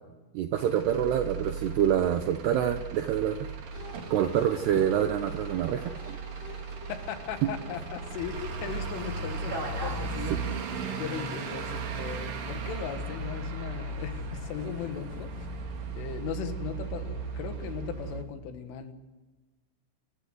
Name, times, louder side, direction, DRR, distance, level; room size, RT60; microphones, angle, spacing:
voice 1, 0.3-3.4 4.1-6.2 7.4-7.5 10.3-10.4, right 10 dB, 80° right, 8 dB, 2.4 m, -26 dB
Truck / Idling, 0.5-18.2, right 4 dB, 50° right, 3.3 m, -37 dB
sound 1, 3.7-13.2, left 2 dB, 45° left, 8.6 m, -50 dB
voice 2, 6.9-10.5 11.0-15.6 15.9-18.9, left 8 dB, 75° left, 8 dB, 4.1 m, -38 dB
sound 2, 9.4-17.6, right 2 dB, 25° right, 2.3 m, -44 dB
28.0 x 15.0 x 8.0 m, 1.2 s
omnidirectional pair, 6.0 m